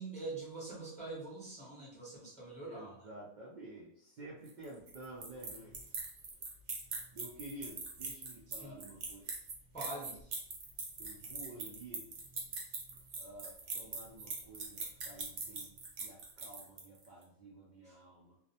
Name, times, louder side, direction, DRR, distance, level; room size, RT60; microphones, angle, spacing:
voice 1, 0.0-2.9 8.6-8.7 9.7-10.3 17.8-17.9, right 2 dB, 10° left, -6 dB, 0.4 m, -44 dB
voice 2, 2.6-5.9 7.1-9.3 11.0-12.1 13.2-18.4, right 1 dB, 90° right, -5 dB, 0.4 m, -51 dB
sound 1, 4.5-17.1, right 4 dB, 65° right, 0.8 m, -42 dB
2.4 x 2.0 x 2.7 m, 0.66 s
omnidirectional pair, 1.5 m